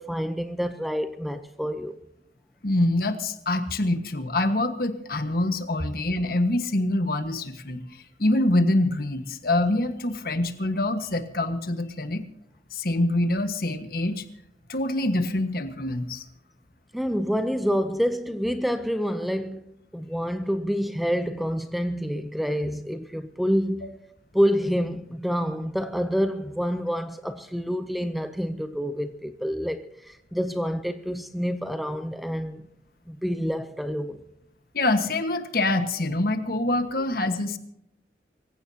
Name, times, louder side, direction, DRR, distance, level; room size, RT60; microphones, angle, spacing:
voice 1, 0.0-1.9 16.9-24.0 24.3-32.7 33.1-34.2, equal, ahead, 0.6 m, -27 dB
voice 2, 2.6-12.2 12.7-14.2 14.7-16.2 34.7-37.6, left 1 dB, 55° left, 1.5 m, -25 dB
24.5 x 16.0 x 2.8 m
head